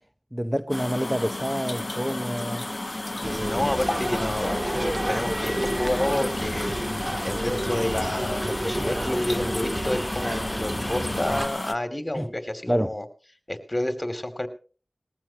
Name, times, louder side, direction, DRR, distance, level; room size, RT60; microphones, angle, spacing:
voice 1, 0.3-2.7 3.2-3.6 12.1-12.3 12.7-13.0, equal, 10° right, 0.9 m, -28 dB
sound 1, 0.7-11.8, left 2 dB, 40° left, 0.7 m, -32 dB
sound 2, 3.2-11.5, right 1 dB, 30° right, 2.4 m, -30 dB
voice 2, 3.5-6.7 7.2-13.0 13.5-14.5, left 1 dB, 25° left, 2.8 m, -29 dB
20.5 x 15.0 x 3.0 m
wide cardioid pair, 50°, 0 cm